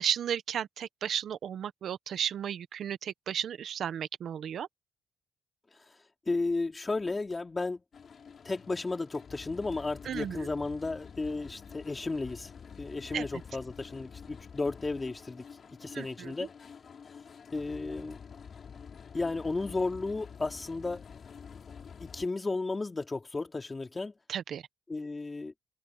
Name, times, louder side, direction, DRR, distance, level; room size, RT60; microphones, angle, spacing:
voice 1, 0.0-4.7 10.0-10.5 13.1-13.3 15.9-16.3 24.3-24.6, right 9 dB, 65° right, 1.1 m, -34 dB
voice 2, 6.3-7.8 8.4-12.5 12.8-16.5 17.5-18.2 19.1-21.0 22.0-24.1 24.9-25.5, left 3 dB, 25° left, 3.7 m, -34 dB
sound 1, 7.9-22.3, left 6 dB, 50° left, 5.9 m, -48 dB
cardioid pair, 90°, 0 cm